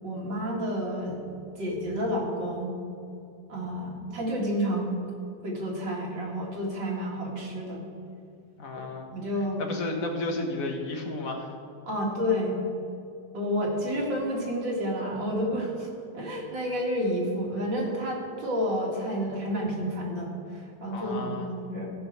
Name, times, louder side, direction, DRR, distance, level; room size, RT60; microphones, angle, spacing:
voice 1, 0.0-1.2 1.6-2.7 3.5-4.9 5.4-7.8 8.7-8.8 9.1-9.7 11.8-12.6 13.3-21.9, equal, 85° right, -3 dB, 2.7 m, -30 dB
voice 2, 8.6-9.1 9.6-11.5 20.9-21.5, left 2 dB, 50° left, 3 dB, 1.5 m, -32 dB
14.5 x 5.3 x 6.6 m, 2.5 s
omnidirectional pair, 2.0 m